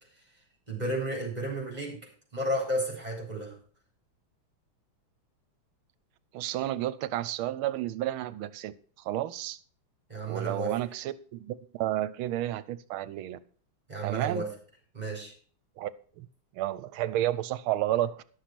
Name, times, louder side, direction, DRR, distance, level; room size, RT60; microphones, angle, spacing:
voice 1, 0.7-2.0 2.3-3.6 10.1-10.7 13.9-14.5 14.9-15.3, right 1 dB, 20° right, 4.2 m, -32 dB
voice 2, 6.3-9.6 10.3-13.4 14.0-14.4 15.8-15.9 16.2-16.3 16.5-18.2, right 13 dB, 85° right, 1.5 m, -31 dB
11.5 x 6.6 x 5.9 m
omnidirectional pair, 2.3 m